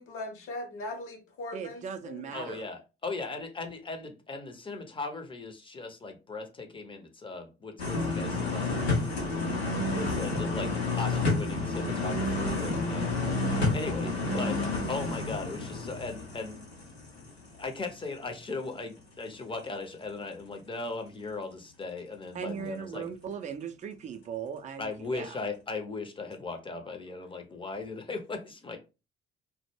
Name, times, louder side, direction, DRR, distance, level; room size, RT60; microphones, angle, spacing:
voice 1, 0.0-2.6 22.4-22.7, left 2 dB, 45° left, 0.8 m, -40 dB
voice 2, 1.5-2.6 12.4-12.8 22.3-25.4, right 7 dB, 25° right, 0.4 m, -38 dB
voice 3, 2.3-8.8 9.9-13.1 13.7-14.6 14.9-16.6 17.5-23.1 24.8-28.8, left 3 dB, 15° left, 0.6 m, -38 dB
sound 1, 7.8-17.6 18.0-18.1, left 3 dB, 85° left, 0.7 m, -30 dB
2.1 x 2.1 x 3.1 m
figure-of-eight pair, 50°, 31 cm